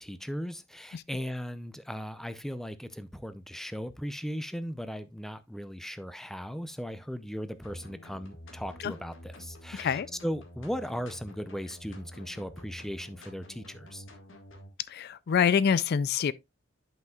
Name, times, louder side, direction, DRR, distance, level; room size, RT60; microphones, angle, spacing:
voice 1, 0.0-14.0, equal, ahead, 0.5 m, -37 dB
sound 1, 7.6-14.7, left 1 dB, 75° left, 1.8 m, -48 dB
voice 2, 14.9-16.3, left 7 dB, 55° left, 0.3 m, -26 dB
10.5 x 5.7 x 2.3 m
head